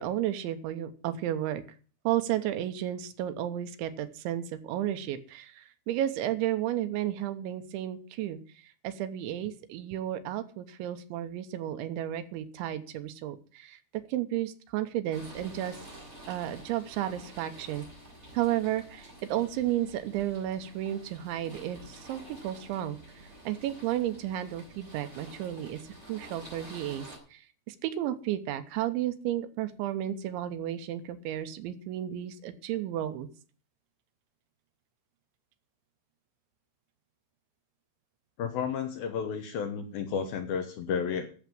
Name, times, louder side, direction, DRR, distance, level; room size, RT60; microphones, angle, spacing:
voice 1, 0.0-1.6 2.0-15.8 16.3-17.9 18.3-23.0 23.5-25.8 26.1-27.1 27.3-27.4 27.7-33.3, right 12 dB, 85° right, 9 dB, 3.3 m, -33 dB
sound 1, 15.1-27.2, right 1 dB, 15° right, 5.3 m, -49 dB
voice 2, 38.4-41.3, left 7 dB, 70° left, 6 dB, 2.4 m, -32 dB
12.0 x 7.4 x 7.5 m, 0.41 s
omnidirectional pair, 5.4 m